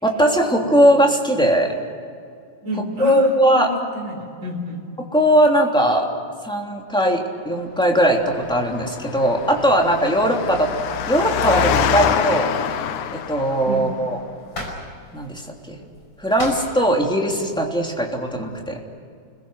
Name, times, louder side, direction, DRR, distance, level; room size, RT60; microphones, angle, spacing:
voice 1, 0.0-1.7 3.0-3.7 5.1-6.1 6.4-10.7 11.1-12.5 13.1-14.2 15.1-15.4 15.7-15.8 16.2-18.8, equal, ahead, 0 dB, 2.8 m, -19 dB
voice 2, 2.6-4.8 13.7-13.9, equal, 25° right, 0 dB, 4.4 m, -29 dB
Engine, 8.2-13.8, left 7 dB, 75° left, 2.5 m, -25 dB
sound 1, 13.4-18.8, left 1 dB, 35° left, 5.9 m, -39 dB
29.5 x 22.0 x 6.5 m, 2.3 s
omnidirectional pair, 3.7 m